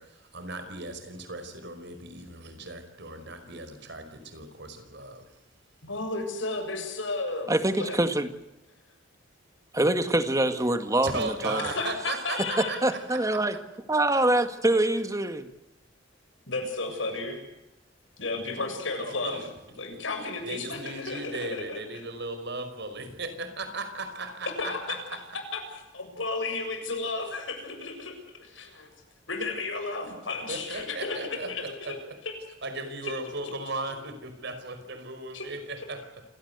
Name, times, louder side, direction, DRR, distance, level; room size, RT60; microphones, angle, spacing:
voice 1, 0.0-5.4 11.0-13.6 19.0-19.5 20.5-25.2 30.5-32.2 32.6-36.1, right 2 dB, 65° right, 9 dB, 5.2 m, -37 dB
voice 2, 5.8-7.5 7.8-8.0 11.6-12.8 16.5-17.4 18.2-22.0 24.6-25.2 25.5-28.9 29.3-31.7 32.3-32.4 33.0-33.1 35.3-35.5, left 3 dB, 80° left, 4 dB, 7.5 m, -33 dB
voice 3, 7.5-8.3 9.7-11.6 12.6-13.6 13.9-15.5, right 1 dB, 15° right, 9 dB, 1.9 m, -25 dB
28.0 x 18.0 x 8.2 m, 0.93 s
head